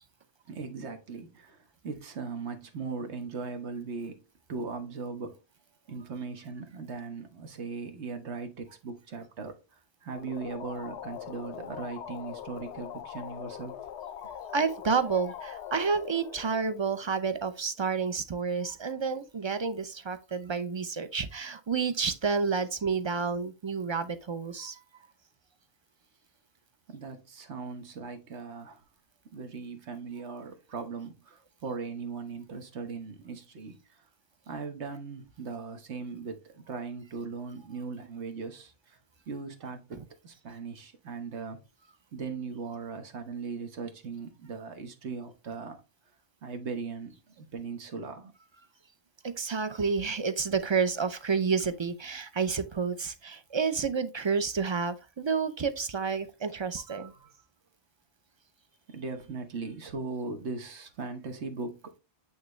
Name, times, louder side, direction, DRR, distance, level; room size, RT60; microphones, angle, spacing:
voice 1, 0.5-4.2 4.5-5.4 5.9-13.7 18.2-18.3 26.9-28.8 29.3-34.0 34.5-39.0 39.3-41.6 42.1-45.8 46.4-48.3 56.8-57.4 58.9-61.8, right 4 dB, 90° right, 1.4 m, -39 dB
sound 1, 10.1-17.5, left 9 dB, 85° left, 0.9 m, -42 dB
voice 2, 14.5-24.8 49.2-57.1, right 5 dB, 40° right, 0.4 m, -30 dB
8.7 x 3.5 x 3.1 m
omnidirectional pair, 1.1 m